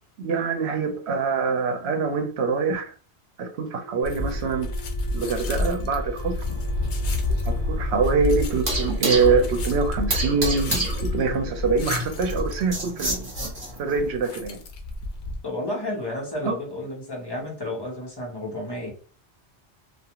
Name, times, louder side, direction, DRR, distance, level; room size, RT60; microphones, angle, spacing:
voice 1, 0.2-2.8 3.4-4.7 5.1-6.6 7.4-13.3 13.8-14.6 16.4-16.5, right 4 dB, 75° right, 5 dB, 0.9 m, -24 dB
Wind instrument woodwind instrument, 3.8-13.0, left 1 dB, 50° left, 1.1 m, -46 dB
sound 1, 4.0-15.4, left 1 dB, 80° left, 0.9 m, -29 dB
sound 2, 6.2-14.0, right 1 dB, 40° right, 1.0 m, -31 dB
voice 2, 15.4-18.9, left 1 dB, 25° left, -3 dB, 0.9 m, -31 dB
2.4 x 2.4 x 2.9 m, 0.40 s
omnidirectional pair, 1.1 m